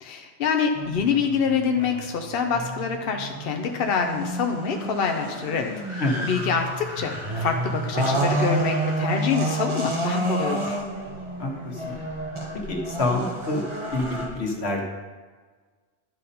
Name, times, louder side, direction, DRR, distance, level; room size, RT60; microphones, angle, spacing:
voice 1, 0.0-10.8, left 6 dB, 65° left, 4 dB, 0.9 m, -26 dB
sound 1, 0.7-14.3, right 1 dB, 30° right, 1.4 m, -29 dB
voice 2, 11.4-12.0 12.7-13.6 13.9-14.9, left 2 dB, 90° left, 1 dB, 1.6 m, -27 dB
12.0 x 5.2 x 4.2 m, 1.4 s
omnidirectional pair, 1.1 m